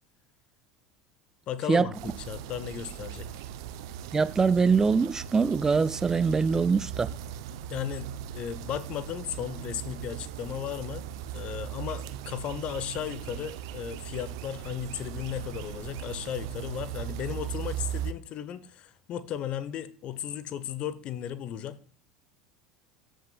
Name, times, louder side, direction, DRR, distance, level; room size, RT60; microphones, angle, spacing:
voice 1, 1.5-3.3 7.7-11.1 11.3-21.8, left 10 dB, 45° left, 0.9 m, -35 dB
sound 1, 1.9-18.1, right 10 dB, 65° right, 0.6 m, -38 dB
voice 2, 4.1-7.1, right 5 dB, 20° right, 0.3 m, -23 dB
14.0 x 6.4 x 2.3 m
figure-of-eight pair, 75°, 3 cm